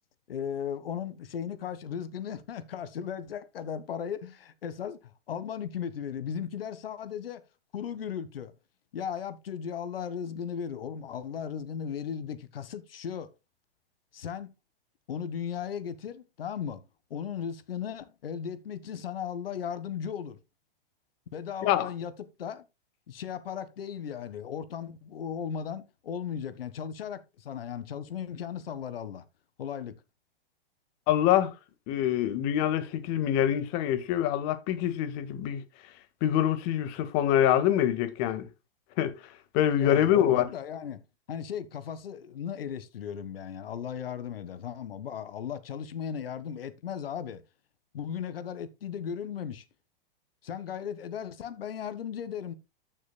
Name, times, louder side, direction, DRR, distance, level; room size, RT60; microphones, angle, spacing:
voice 1, 0.3-7.4 7.7-8.5 8.9-13.3 14.1-14.5 15.1-16.8 17.1-20.4 21.3-22.6 23.1-29.2 29.6-29.9 39.8-41.0 41.3-47.4 47.9-49.6 50.4-52.5, left 8 dB, 80° left, 1.6 m, -36 dB
voice 2, 31.1-31.5 31.9-35.6 36.2-38.5 39.0-39.1 39.5-40.5, left 11 dB, 45° left, 1.8 m, -25 dB
14.0 x 6.5 x 2.3 m
hypercardioid pair, 120°, 29 cm